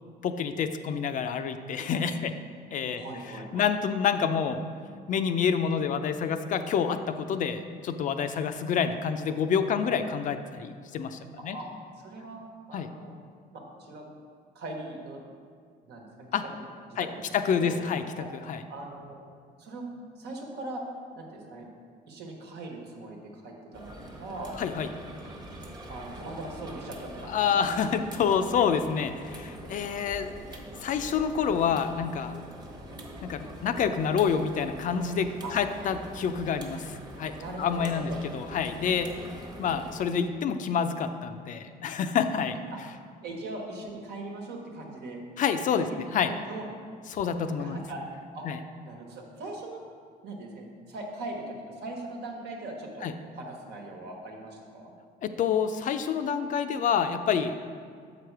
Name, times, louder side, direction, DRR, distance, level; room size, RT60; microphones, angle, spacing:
voice 1, 0.2-2.3 2.7-3.0 3.5-4.6 5.1-11.6 12.7-12.9 16.3-16.4 17.0-17.1 17.4-18.0 18.5-18.6 24.6-24.9 27.3-32.3 33.2-39.1 39.6-42.6 45.4-46.3 47.1-47.8 48.4-48.6 53.0-53.1 55.2-57.5, left 7 dB, 50° left, 9 dB, 0.4 m, -28 dB
voice 2, 2.9-3.7 11.4-11.7 12.0-12.4 12.7-13.1 13.5-14.0 14.5-15.2 15.8-16.3 16.9-17.8 18.1-18.3 18.7-19.2 19.6-19.9 20.2-20.8 21.1-21.7 22.1-24.6 25.9-27.4 35.4-35.6 37.3-38.2 42.7-42.8 43.2-45.2 45.8-46.0 46.3-46.7 47.4-48.0 48.3-48.4 48.8-49.8 50.2-53.1 53.3-54.9, right 2 dB, 75° right, 0 dB, 1.3 m, -40 dB
sound 1, 23.7-40.0, right 1 dB, 25° right, 1.1 m, -44 dB
6.9 x 4.9 x 4.6 m, 2.1 s
cardioid pair, 110°, 17 cm